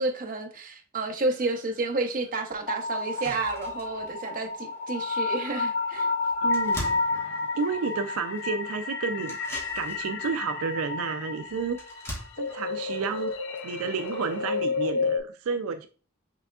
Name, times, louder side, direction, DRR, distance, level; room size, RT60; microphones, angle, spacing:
voice 1, 0.0-6.1, right 3 dB, 40° right, 0.7 m, -30 dB
sound 1, 1.9-2.0 2.5-2.6 2.9-14.6, equal, 15° left, 1.3 m, -45 dB
sound 2, 2.7-15.2, left 3 dB, 60° left, 0.5 m, -30 dB
voice 2, 6.4-9.4 9.8-11.8 12.4-13.3 13.6-15.9, right 5 dB, 80° right, 0.4 m, -31 dB
5.9 x 3.5 x 2.3 m
head